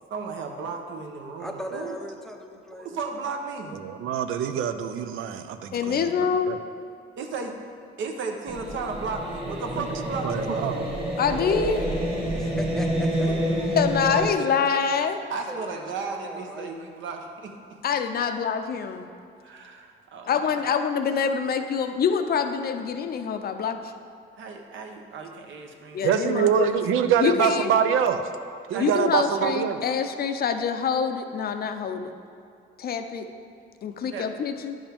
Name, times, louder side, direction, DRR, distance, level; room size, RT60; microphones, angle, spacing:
voice 1, 0.1-1.9 2.7-3.8 7.2-7.5 8.0-10.7 13.3-13.4 15.3-17.5 18.2-18.3 19.4-20.7 24.4-26.2 28.7-29.1 34.1-34.3, right 4 dB, 70° right, 3 dB, 0.9 m, -34 dB
voice 2, 1.4-2.9 12.3-13.3 14.0-14.6 15.5-16.7, equal, ahead, 3 dB, 0.5 m, -38 dB
voice 3, 3.7-6.1 6.5-6.6 9.8-9.9 10.2-11.1 26.0-28.2 28.7-29.8, right 8 dB, 85° right, 9 dB, 0.5 m, -25 dB
voice 4, 5.7-6.5 11.2-11.9 13.7-15.2 17.8-19.1 20.2-23.9 25.9-26.7 27.2-27.7 28.8-32.1 32.8-33.3 33.8-34.8, left 6 dB, 50° left, 7 dB, 0.5 m, -25 dB
sound 1, 8.5-14.3, equal, 25° right, 1.6 m, -28 dB
10.0 x 5.3 x 3.4 m, 2.4 s
cardioid pair, 120°, 21 cm